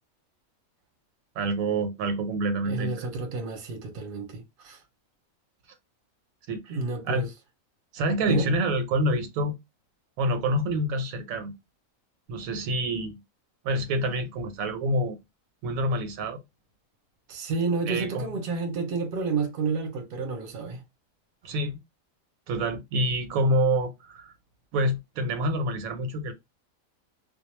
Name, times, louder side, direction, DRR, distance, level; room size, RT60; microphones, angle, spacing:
voice 1, 1.4-3.1 6.5-6.8 7.0-7.3 7.9-9.6 10.2-11.5 12.3-13.2 13.6-15.2 15.6-16.4 17.9-18.3 21.4-21.8 22.5-24.3 24.7-26.3, right 1 dB, 85° right, 1.0 m, -27 dB
voice 2, 2.6-4.8 6.7-7.3 8.3-8.5 17.3-20.8, right 4 dB, 50° right, 0.7 m, -30 dB
2.3 x 2.1 x 3.0 m
omnidirectional pair, 1.4 m